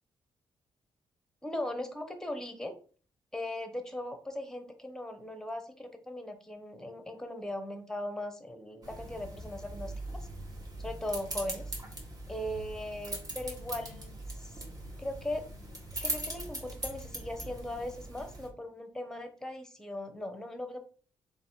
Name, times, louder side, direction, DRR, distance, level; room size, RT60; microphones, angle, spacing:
voice 1, 1.4-2.7 3.3-9.9 10.8-11.7 12.3-14.6 15.0-15.5 16.0-20.8, left 1 dB, 5° left, 7 dB, 0.8 m, -39 dB
sound 1, 8.8-18.5, right 1 dB, 40° right, 1.3 m, -41 dB
3.3 x 2.5 x 4.2 m, 0.41 s
cardioid pair, 100°, 10 cm